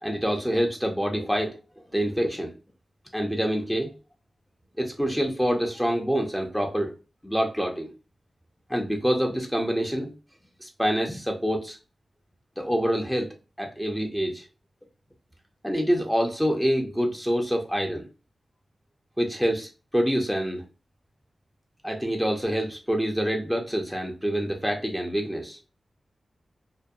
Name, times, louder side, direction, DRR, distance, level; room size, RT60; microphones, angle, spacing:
voice 1, 0.0-1.6 1.9-2.5 3.1-3.9 4.8-6.9 7.2-7.9 8.7-10.1 10.6-11.8 12.6-14.5 15.6-18.1 19.2-20.6 21.8-25.6, equal, ahead, 2 dB, 0.6 m, -26 dB
2.6 x 2.2 x 2.3 m, 0.32 s
cardioid pair, 40°, 0 cm